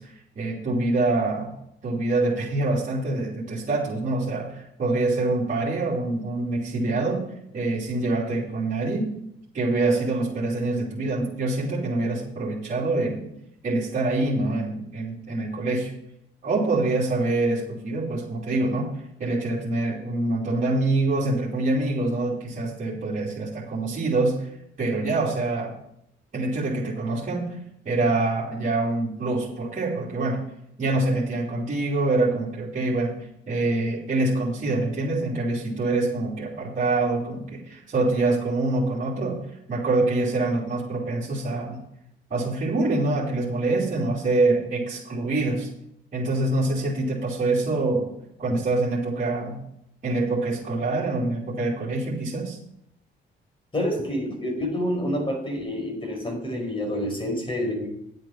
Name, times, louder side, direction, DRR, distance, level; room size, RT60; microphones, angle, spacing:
voice 1, 0.0-1.5 1.8-7.2 7.5-9.1 9.5-13.3 13.6-15.9 16.4-24.5 24.8-25.7 26.3-27.5 27.8-30.4 30.8-33.1 33.5-39.4 39.7-41.8 42.3-45.7 46.1-48.1 48.4-49.6 50.0-52.6, right 2 dB, 40° right, -6 dB, 3.3 m, -25 dB
voice 2, 53.7-57.9, equal, 25° left, 1 dB, 4.9 m, -28 dB
10.5 x 8.2 x 5.9 m, 0.75 s
cardioid pair, 90°, 20 cm